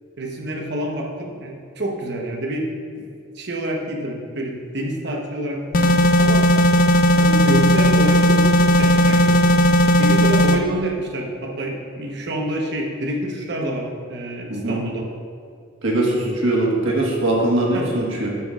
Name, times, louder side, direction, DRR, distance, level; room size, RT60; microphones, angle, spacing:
voice 1, 0.2-3.1 3.3-6.4 7.2-8.5 8.8-9.4 10.0-15.1 17.7-17.9, right 1 dB, 60° right, 0 dB, 1.0 m, -27 dB
sound 1, 5.7-10.6, equal, 45° left, 0.4 m, -15 dB
voice 2, 14.5-14.8 15.8-18.3, right 1 dB, 80° right, -3 dB, 1.5 m, -21 dB
11.5 x 5.9 x 2.4 m, 2.3 s
head